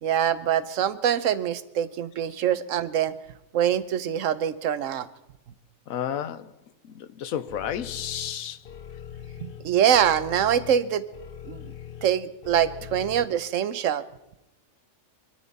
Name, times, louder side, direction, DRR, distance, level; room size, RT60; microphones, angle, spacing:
voice 1, 0.0-3.1 3.5-5.1 9.4-11.0 11.5-11.7 12.0-14.0, right 9 dB, 70° right, 1.1 m, -24 dB
voice 2, 5.9-6.5 6.8-8.6, left 9 dB, 85° left, 1.2 m, -32 dB
sound 1, 7.5-13.2, left 9 dB, 50° left, 0.8 m, -42 dB
23.0 x 13.5 x 4.1 m
omnidirectional pair, 1.4 m